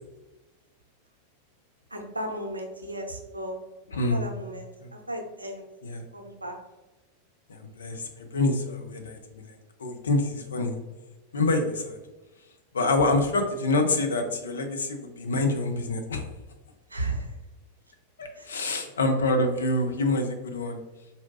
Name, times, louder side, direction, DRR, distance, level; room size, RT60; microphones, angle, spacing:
voice 1, 1.9-3.6 4.1-4.7 4.9-5.6 6.1-6.6 16.9-17.3 18.3-18.5, right 1 dB, 80° right, 2 dB, 0.6 m, -34 dB
voice 2, 3.9-4.2 4.8-4.9 5.8-6.1 7.5-9.5 9.8-10.8 11.3-12.0 12.7-16.2 18.2-20.8, left 2 dB, 70° left, 5 dB, 0.5 m, -26 dB
4.3 x 2.7 x 2.7 m, 1.1 s
figure-of-eight pair, 90°, 0 cm